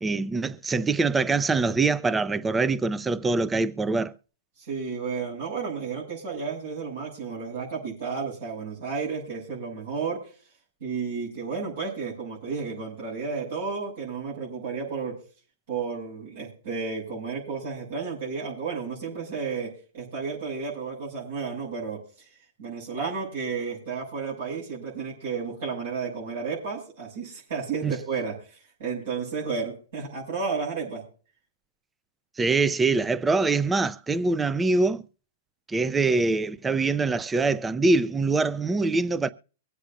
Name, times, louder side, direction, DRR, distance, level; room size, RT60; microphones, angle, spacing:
voice 1, 0.0-4.1 27.8-27.9 32.4-35.0 35.7-39.3, right 3 dB, 10° right, 0.5 m, -24 dB
voice 2, 4.7-10.2 10.8-15.2 15.7-22.0 22.6-28.3 28.8-31.0, right 5 dB, 70° right, 6.5 m, -32 dB
24.0 x 8.3 x 2.6 m
hypercardioid pair, 130°, 0 cm